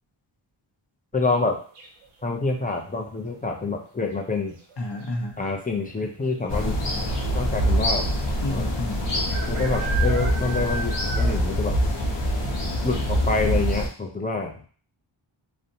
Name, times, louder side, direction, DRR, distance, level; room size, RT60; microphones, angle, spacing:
voice 1, 1.1-1.6 2.2-4.6 5.4-6.8 7.3-8.1 8.5-8.7 9.5-11.7 12.8-14.5, left 3 dB, 20° left, 1 dB, 0.4 m, -27 dB
sound 1, 1.8-2.2 4.0-4.4 4.7-4.8 5.0-5.6 6.3-6.4 6.6-6.7 8.3-8.4 9.3-11.6 12.0-12.1 12.5-12.6 13.1-13.2, right 3 dB, 80° right, 0.6 m, -34 dB
voice 2, 4.8-5.4 8.4-9.1, left 1 dB, 55° left, 1 dB, 0.7 m, -30 dB
sound 2, 6.5-13.9, equal, 90° left, 0.8 m, -24 dB
2.7 x 2.1 x 2.6 m, 0.42 s
wide cardioid pair, 80°, 49 cm